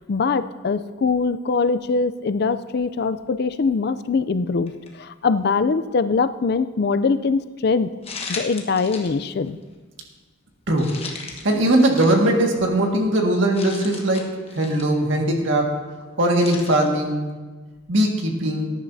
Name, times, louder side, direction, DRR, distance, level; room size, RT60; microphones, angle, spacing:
voice 1, 0.1-7.9 8.3-9.6, left 4 dB, 50° left, 12 dB, 0.4 m, -22 dB
sound 1, 4.7-5.0 5.5-5.6 8.0-9.1 9.4-9.6 10.8-12.3 12.8-12.9 13.5-14.9 16.4-16.9, left 4 dB, 30° left, 1.3 m, -36 dB
voice 2, 11.4-15.8 16.2-17.2 17.9-18.7, right 1 dB, 65° right, 1 dB, 1.8 m, -20 dB
18.5 x 10.5 x 2.7 m, 1.3 s
head